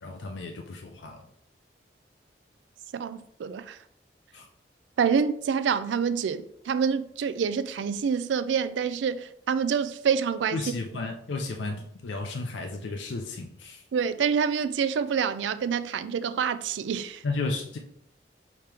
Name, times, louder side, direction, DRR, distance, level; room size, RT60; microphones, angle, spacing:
voice 1, 0.0-1.2 4.3-4.5 10.5-13.8 17.2-17.8, left 3 dB, 85° left, 0.5 m, -33 dB
voice 2, 2.9-3.8 5.0-10.6 13.9-17.2, right 6 dB, 85° right, 0.3 m, -27 dB
5.1 x 2.9 x 3.4 m
head